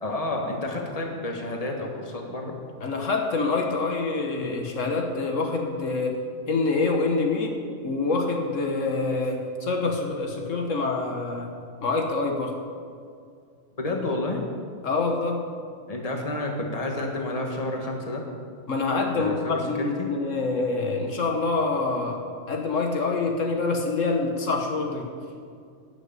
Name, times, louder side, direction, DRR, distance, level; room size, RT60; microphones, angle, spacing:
voice 1, 0.0-2.6 13.8-14.4 15.9-18.2 19.1-20.1, left 2 dB, 30° left, 1 dB, 1.7 m, -30 dB
voice 2, 2.8-6.2 6.5-11.5 11.8-12.6 14.8-15.4 18.7-22.2 22.5-25.1, left 3 dB, 75° left, 2 dB, 1.6 m, -26 dB
13.0 x 6.5 x 9.0 m, 2.3 s
omnidirectional pair, 1.4 m